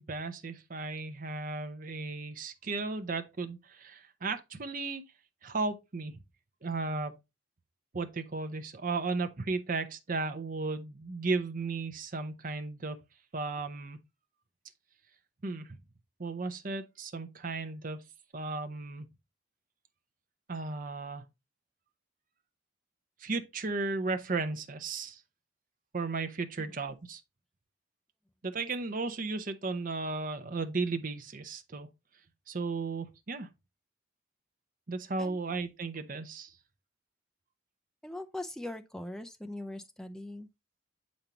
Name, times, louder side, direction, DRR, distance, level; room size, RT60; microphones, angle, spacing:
voice 1, 0.0-5.0 5.4-6.2 6.6-7.2 7.9-13.0 13.3-14.0 15.4-15.7 16.2-18.0 18.3-19.1 20.5-21.3 23.2-25.2 25.9-27.2 28.4-31.9 32.5-33.5 34.9-36.5, right 3 dB, 40° right, 0.7 m, -35 dB
voice 2, 38.0-40.5, left 1 dB, 5° left, 0.4 m, -41 dB
7.1 x 5.2 x 2.9 m
head